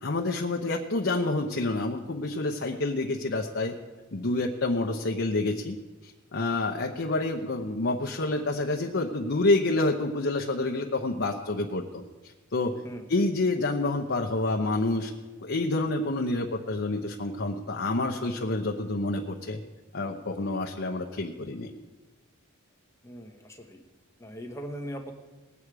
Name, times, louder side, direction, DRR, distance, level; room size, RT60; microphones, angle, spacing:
voice 1, 0.0-3.7 4.1-5.8 6.0-12.0 12.5-12.7 13.1-15.1 15.4-19.6 19.9-21.7, left 2 dB, 55° left, 1 dB, 0.9 m, -28 dB
voice 2, 23.0-23.8 24.2-25.1, equal, 15° left, 2 dB, 1.3 m, -40 dB
20.0 x 8.5 x 4.8 m, 1.2 s
head